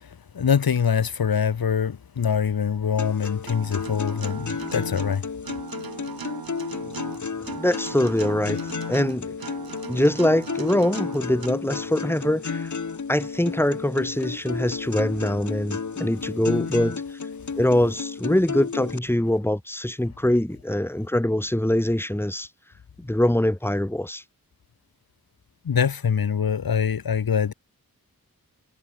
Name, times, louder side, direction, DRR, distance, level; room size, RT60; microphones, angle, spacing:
voice 1, 0.3-5.2 25.7-27.5, left 7 dB, 85° left, 1.9 m, -24 dB
sound 1, 3.0-19.0, left 5 dB, 55° left, 2.3 m, -32 dB
Acoustic guitar, 3.5-11.5, right 6 dB, 85° right, 2.6 m, -38 dB
voice 2, 7.5-8.6 8.9-9.3 9.9-12.7 13.1-17.0 17.6-22.5 23.0-24.2, left 1 dB, 5° left, 2.3 m, -23 dB
wide cardioid pair, 65°, 35 cm